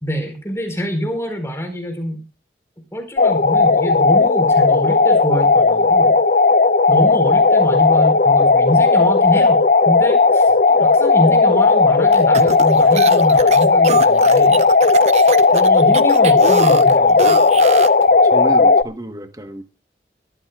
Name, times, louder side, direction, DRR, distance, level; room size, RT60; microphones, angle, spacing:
voice 1, 0.0-2.2 2.9-6.2 6.9-9.6 9.9-14.6 15.5-17.4, equal, 15° left, 4.4 m, -25 dB
sound 1, 3.2-18.8, left 4 dB, 45° left, 0.6 m, -14 dB
sound 2, 12.1-18.0, right 4 dB, 35° right, 0.6 m, -25 dB
voice 2, 18.2-19.6, right 1 dB, 20° right, 1.2 m, -30 dB
22.0 x 13.5 x 2.4 m
head